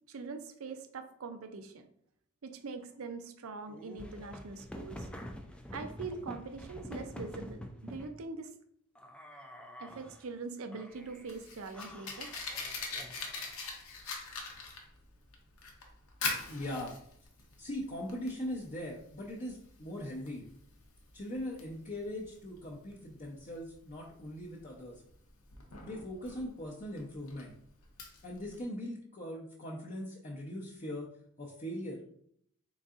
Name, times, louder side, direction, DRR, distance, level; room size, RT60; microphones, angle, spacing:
voice 1, 0.1-1.8 2.4-5.1 5.7-8.5 9.8-12.3, right 4 dB, 70° right, 8 dB, 0.5 m, -43 dB
sound 1, 3.7-8.1 9.0-10.3 10.7-11.3 11.7-13.6, equal, 5° left, 0.3 m, -47 dB
Fire, 10.9-28.6, left 4 dB, 80° left, 0.8 m, -43 dB
voice 2, 16.5-16.9 17.6-20.4 21.1-25.0 25.8-27.6 28.2-31.1 31.4-32.1, left 1 dB, 35° left, -4 dB, 0.7 m, -40 dB
3.9 x 3.7 x 2.4 m, 0.67 s
head